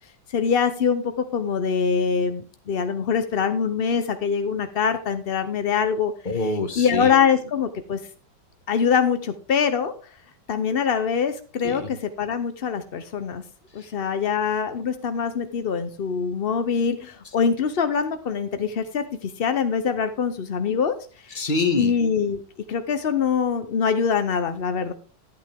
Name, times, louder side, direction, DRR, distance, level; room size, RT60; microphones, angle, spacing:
voice 1, 0.3-6.1 6.8-8.0 8.7-9.9 10.5-13.4 13.7-21.0 21.2-21.4 21.8-22.4 22.7-24.9, left 6 dB, 60° left, 9 dB, 0.6 m, -24 dB
voice 2, 6.2-7.2 11.6-11.9 13.8-13.9 21.3-21.9, left 3 dB, 30° left, 6 dB, 1.4 m, -25 dB
13.0 x 9.0 x 3.5 m, 0.36 s
omnidirectional pair, 2.0 m